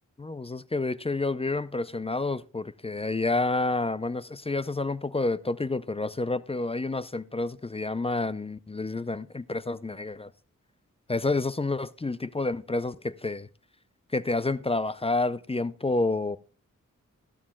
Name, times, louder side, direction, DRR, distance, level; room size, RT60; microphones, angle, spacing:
voice 1, 0.2-10.3 11.1-13.5 14.1-16.4, left 3 dB, 20° left, 0.5 m, -29 dB
14.0 x 12.5 x 2.3 m
cardioid pair, 50°, 32 cm